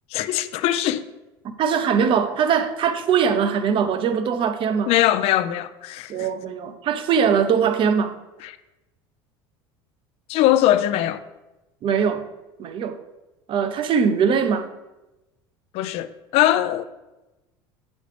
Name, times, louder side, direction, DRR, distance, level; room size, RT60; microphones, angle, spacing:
voice 1, 0.1-1.1 4.9-6.3 8.4-8.6 10.3-11.2 15.7-16.8, left 13 dB, 60° left, 0.4 m, -21 dB
voice 2, 1.4-4.9 6.1-8.2 11.8-12.3 12.6-13.0 13.5-14.7, right 7 dB, 45° right, 0.7 m, -21 dB
8.0 x 5.2 x 3.4 m
supercardioid pair, 95°, 12 cm